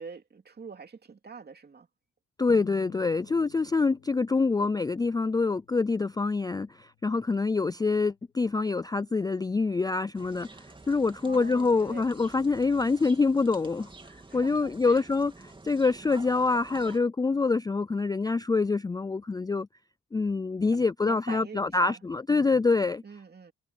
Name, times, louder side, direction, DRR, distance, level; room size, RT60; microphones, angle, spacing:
voice 1, 0.0-1.9 11.2-12.0 14.3-15.0 21.0-22.0 23.0-23.5, right 5 dB, 35° right, 2.5 m, -44 dB
voice 2, 2.4-19.7 20.1-23.0, left 4 dB, 15° left, 0.4 m, -26 dB
sound 1, 2.5-13.2, left 13 dB, 80° left, 3.1 m, -58 dB
sound 2, 10.1-17.0, right 2 dB, 15° right, 2.7 m, -49 dB
cardioid pair, 90°, 30 cm